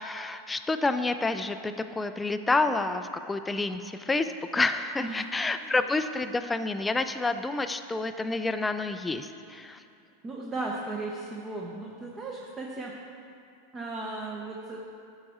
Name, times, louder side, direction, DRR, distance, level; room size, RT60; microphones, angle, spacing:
voice 1, 0.0-9.8, left 3 dB, 10° left, 10 dB, 0.3 m, -29 dB
voice 2, 10.2-12.9 13.7-14.8, right 2 dB, 20° right, -2 dB, 0.8 m, -36 dB
11.5 x 4.8 x 4.2 m, 2.5 s
supercardioid pair, 135°, 0 cm